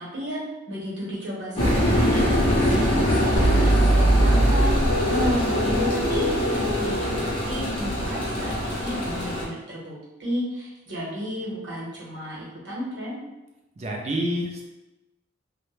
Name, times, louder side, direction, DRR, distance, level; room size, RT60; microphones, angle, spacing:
voice 1, 0.0-2.2 2.5-4.8 5.1-13.2, equal, 70° right, -6 dB, 0.9 m, -32 dB
sound 1, 1.6-9.4, equal, 25° left, 0.6 m, -24 dB
sound 2, 3.4-8.1, right 1 dB, 85° left, 0.4 m, -23 dB
voice 2, 13.8-14.7, equal, 35° right, 0 dB, 0.4 m, -28 dB
2.1 x 2.1 x 3.0 m, 1.0 s
head